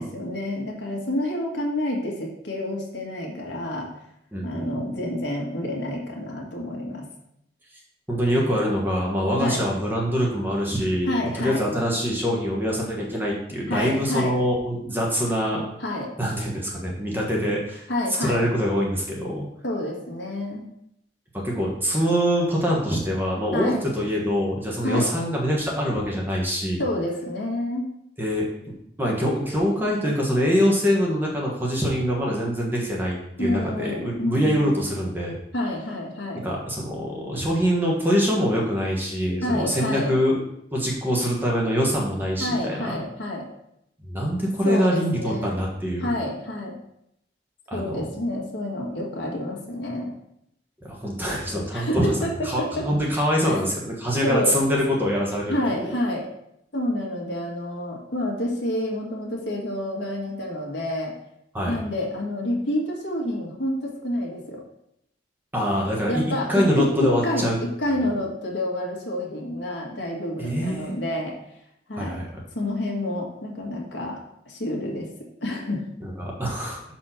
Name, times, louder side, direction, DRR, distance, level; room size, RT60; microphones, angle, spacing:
voice 1, 0.0-3.9 4.4-7.1 9.4-9.7 11.1-11.6 13.7-14.4 15.8-16.1 17.9-18.4 19.6-20.6 23.5-23.8 24.8-25.1 26.8-27.9 33.4-34.7 35.5-36.5 39.4-40.1 42.4-43.5 44.6-45.6 46.0-46.8 47.7-50.1 51.7-52.9 53.5-53.6 54.2-54.6 55.5-56.3 56.7-61.1 61.7-64.6 66.1-71.3 71.9-72.2 72.5-74.2 74.5-75.1 75.4-75.8, left 1 dB, 70° left, -1 dB, 1.8 m, -28 dB
voice 2, 8.1-11.1 11.4-15.7 16.2-17.9 18.2-19.5 21.4-26.8 28.2-28.4 29.0-35.4 36.4-40.4 40.7-42.9 44.1-46.1 47.7-48.0 50.8-55.9 61.5-61.8 65.5-66.2 66.5-67.5 70.4-70.9 71.9-72.3 76.0-76.9, equal, 10° right, -3 dB, 1.3 m, -24 dB
6.3 x 4.3 x 5.8 m, 0.77 s
head